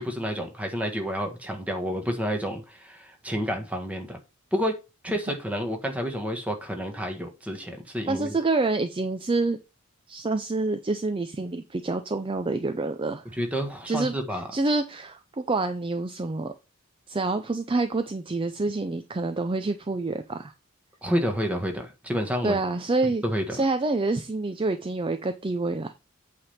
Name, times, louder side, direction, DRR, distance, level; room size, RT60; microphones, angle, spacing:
voice 1, 0.0-4.2 4.5-4.8 5.0-8.4 13.3-14.5 21.0-22.6 23.2-23.6, equal, 5° right, 1.4 m, -29 dB
voice 2, 8.1-9.6 10.1-13.2 13.9-16.5 17.1-20.5 22.4-23.2 23.5-25.9, right 3 dB, 25° right, 0.5 m, -27 dB
8.5 x 3.5 x 5.6 m
head